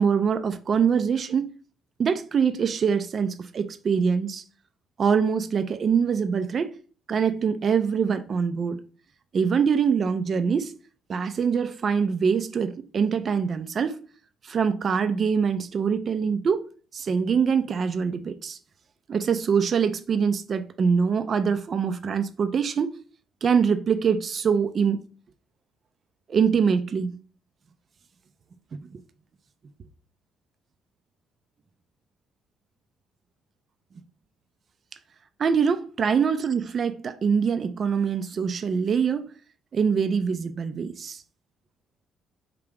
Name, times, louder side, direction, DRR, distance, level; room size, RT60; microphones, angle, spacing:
voice 1, 0.0-1.5 2.0-4.4 5.0-6.7 7.1-8.8 9.3-10.7 11.1-14.0 14.4-16.7 16.9-18.6 19.1-22.9 23.4-25.0 26.3-27.2 28.7-29.0 35.4-39.3 39.7-41.2, right 6 dB, 45° right, 0.4 m, -24 dB
3.6 x 2.8 x 3.5 m
figure-of-eight pair, 50°, 0 cm